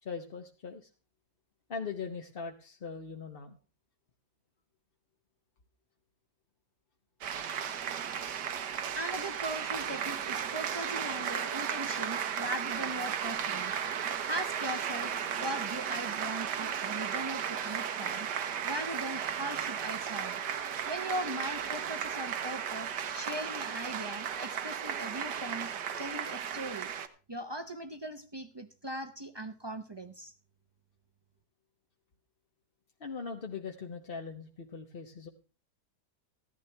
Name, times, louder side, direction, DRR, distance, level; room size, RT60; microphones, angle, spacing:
voice 1, 0.0-0.9 1.7-3.6 21.3-21.4 33.0-35.3, left 5 dB, 40° left, 3 dB, 1.0 m, -40 dB
sound 1, 7.2-27.1, right 8 dB, 90° right, 1.6 m, -35 dB
voice 2, 8.9-13.8 14.2-18.3 18.6-20.4 20.9-25.7 26.0-26.9 27.3-30.3, right 1 dB, 30° right, 8 dB, 0.4 m, -39 dB
15.0 x 12.0 x 3.3 m, 0.35 s
omnidirectional pair, 1.7 m